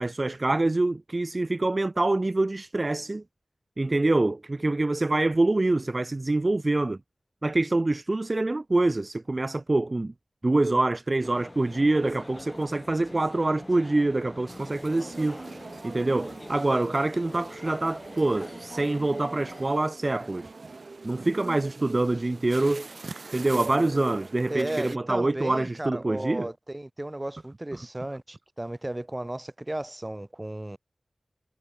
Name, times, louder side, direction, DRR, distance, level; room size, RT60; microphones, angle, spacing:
voice 1, 0.0-3.2 3.8-7.0 7.4-10.1 10.4-15.4 15.8-20.5 21.0-22.9 23.3-26.5, right 2 dB, 35° right, 0.3 m, -25 dB
sound 1, 11.2-19.7, left 1 dB, 25° left, 2.5 m, -45 dB
sound 2, 14.5-25.0, right 3 dB, 60° right, 2.9 m, -43 dB
voice 2, 24.5-30.8, right 1 dB, 20° right, 1.7 m, -34 dB
wide cardioid pair, 85°, 0 cm